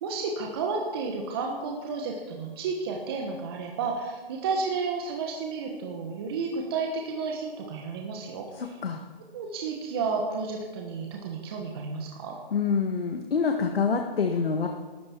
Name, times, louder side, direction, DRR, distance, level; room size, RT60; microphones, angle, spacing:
voice 1, 0.0-8.8 9.3-12.4, right 4 dB, 25° right, 1 dB, 1.4 m, -32 dB
voice 2, 8.5-9.0 12.5-14.7, left 5 dB, 70° left, 3 dB, 1.7 m, -26 dB
19.5 x 13.0 x 4.6 m, 1.3 s
hypercardioid pair, 165°, 30 cm